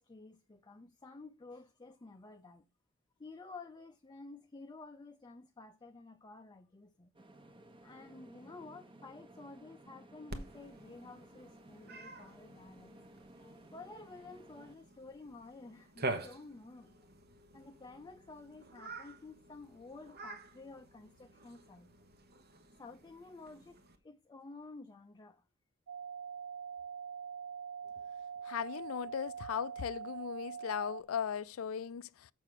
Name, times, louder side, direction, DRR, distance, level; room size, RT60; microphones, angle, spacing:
voice 1, 0.0-2.6 3.2-7.1 7.8-13.0 13.4-17.0 17.5-21.9 22.8-23.8 24.0-25.4, left 3 dB, 20° left, 0.5 m, -52 dB
sound 1, 7.1-14.7, right 1 dB, 25° right, 1.1 m, -57 dB
Cat, 10.3-24.0, right 2 dB, 50° right, 1.2 m, -47 dB
sound 2, 25.9-31.0, right 7 dB, 80° right, 0.6 m, -44 dB
voice 2, 28.4-32.3, left 8 dB, 85° left, 0.4 m, -38 dB
6.6 x 6.0 x 6.6 m
head